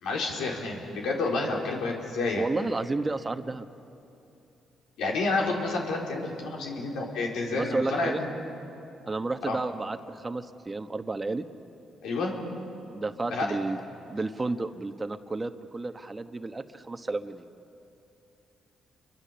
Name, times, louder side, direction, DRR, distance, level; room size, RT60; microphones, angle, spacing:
voice 1, 0.0-2.5 5.0-8.3 9.5-9.6 12.0-12.3 13.3-13.5, left 3 dB, 85° left, -1 dB, 4.1 m, -29 dB
voice 2, 2.4-3.7 7.5-8.2 9.1-11.4 12.9-13.8 14.1-17.5, right 3 dB, 25° right, 8 dB, 1.1 m, -32 dB
29.0 x 23.5 x 7.0 m, 2.8 s
cardioid pair, 90°, 0 cm